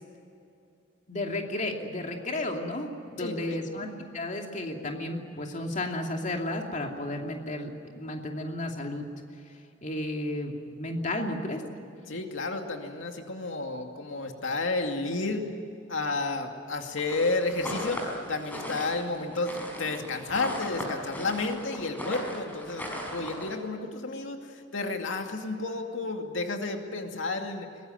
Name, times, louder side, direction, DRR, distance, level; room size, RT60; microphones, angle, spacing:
voice 1, 1.1-3.9 4.1-9.1 9.8-11.6, left 1 dB, 40° left, 2 dB, 2.7 m, -33 dB
voice 2, 3.2-3.6 12.1-15.5 15.9-27.7, left 3 dB, 90° left, 4 dB, 2.4 m, -31 dB
sound 1, 17.0-23.6, equal, 10° left, 5.3 m, -37 dB
23.0 x 20.5 x 9.2 m, 2.6 s
head